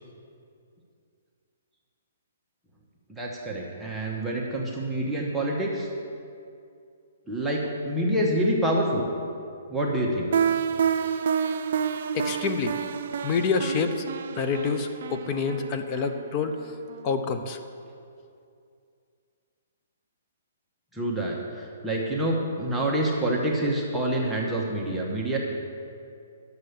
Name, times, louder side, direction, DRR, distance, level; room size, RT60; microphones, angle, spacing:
voice 1, 3.1-5.9 7.3-9.1 9.7-10.4 20.9-25.4, right 1 dB, ahead, -4 dB, 1.0 m, -27 dB
sound 1, 10.3-17.1, right 7 dB, 60° right, 0.5 m, -29 dB
voice 2, 12.1-12.8 13.2-14.1 14.3-16.7 17.0-17.6, left 5 dB, 25° left, 7 dB, 0.6 m, -27 dB
9.9 x 6.8 x 6.7 m, 2.4 s
hypercardioid pair, 160°, 0 cm